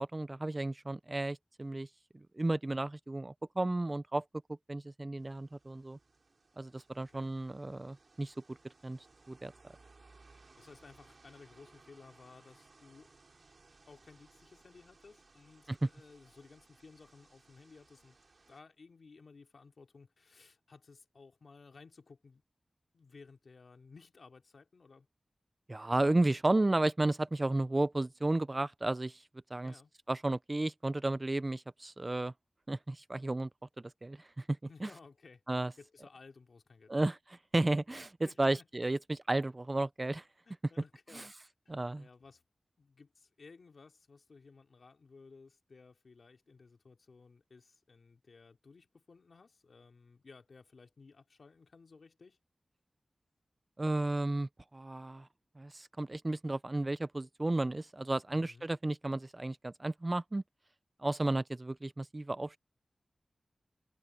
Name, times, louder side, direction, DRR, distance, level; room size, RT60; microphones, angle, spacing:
voice 1, 0.0-1.9 2.1-4.2 4.7-6.0 6.6-8.6 8.8-9.0 9.3-9.5 15.7-15.9 25.7-29.2 29.5-29.7 30.1-32.3 32.7-33.5 33.8-34.9 35.5-35.7 36.9-40.2 41.1-41.3 41.7-42.1 53.8-55.3 55.6-60.4 61.0-62.6, right 2 dB, 30° right, 0.5 m, -33 dB
sound 1, 5.2-18.6, right 3 dB, 55° right, 2.9 m, -63 dB
voice 2, 7.0-7.3 10.6-13.1 13.9-18.2 18.5-22.4 22.9-25.1 29.6-29.9 34.7-35.4 35.8-37.1 38.2-38.7 40.4-41.3 41.6-42.4 42.8-52.4 58.3-58.7, left 4 dB, 75° left, 2.7 m, -57 dB
wide cardioid pair, 85°, 0 cm